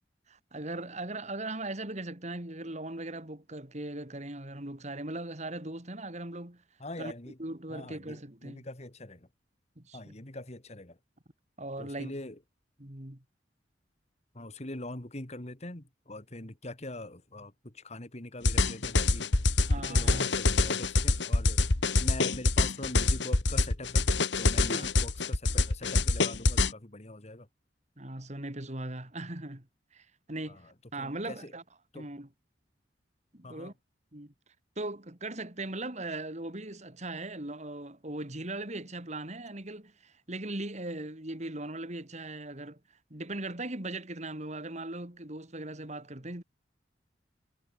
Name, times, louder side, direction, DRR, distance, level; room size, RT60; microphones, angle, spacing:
voice 1, 0.3-6.6 7.0-7.1 7.4-8.6 9.8-10.1 11.6-12.1 12.8-13.2 19.7-20.3 24.7-24.9 28.0-29.7 29.9-30.6 30.9-31.6 31.9-32.3 33.3-33.7 34.1-34.3 34.8-42.8 43.1-46.4, right 2 dB, 40° right, 3.1 m, -39 dB
voice 2, 6.8-7.4 7.7-9.3 9.9-11.0 11.8-12.4 14.3-19.3 19.7-21.6 22.0-24.1 24.4-27.5 30.5-30.7 31.0-31.5 31.9-32.1 33.4-33.7, left 1 dB, 35° left, 2.2 m, -43 dB
sound 1, 18.4-26.7, left 3 dB, 75° left, 1.6 m, -25 dB
head